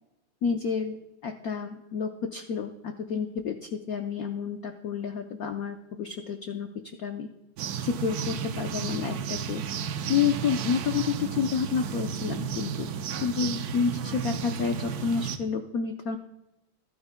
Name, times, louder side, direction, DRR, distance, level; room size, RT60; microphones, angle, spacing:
voice 1, 0.4-1.0 1.2-6.7 7.0-7.3 7.8-9.6 10.1-12.9 13.2-16.2, left 6 dB, 80° left, 5 dB, 0.8 m, -29 dB
sound 1, 7.6-15.4, right 7 dB, 80° right, 0.8 m, -33 dB
14.5 x 12.5 x 2.2 m, 0.96 s
omnidirectional pair, 2.4 m